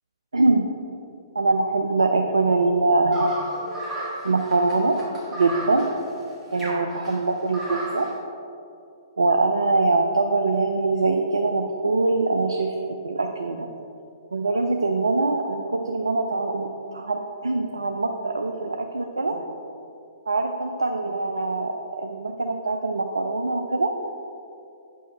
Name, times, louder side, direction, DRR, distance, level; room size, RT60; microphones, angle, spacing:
voice 1, 0.3-0.6 1.3-3.3 4.2-5.0 5.4-5.9 6.5-8.1 9.2-12.7 13.0-13.7 14.3-19.4 20.3-23.9, right 3 dB, 80° right, 4 dB, 0.5 m, -23 dB
sound 1, 3.1-8.1, right 1 dB, 15° right, 1.8 m, -34 dB
8.5 x 5.5 x 4.2 m, 2.7 s
figure-of-eight pair, 120°, 2 cm